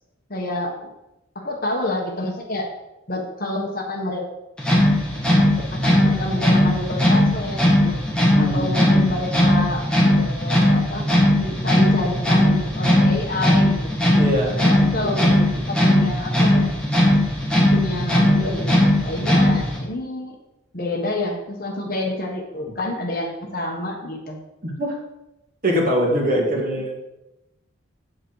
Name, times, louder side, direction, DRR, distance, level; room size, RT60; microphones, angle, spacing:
voice 1, 0.3-0.9 1.3-2.7 3.1-4.2 5.6-8.0 8.4-11.1 11.4-14.0 14.4-15.4 15.7-16.7 17.7-20.4 20.7-24.4, left 1 dB, 45° left, 1 dB, 1.5 m, -28 dB
sound 1, 4.6-19.8, left 1 dB, 5° left, 1.8 m, -18 dB
voice 2, 8.3-9.0 14.1-14.6 15.0-15.1 15.4-15.5 24.6-25.0 25.6-27.0, equal, 40° right, -3 dB, 2.4 m, -23 dB
8.0 x 7.7 x 4.9 m, 0.92 s
head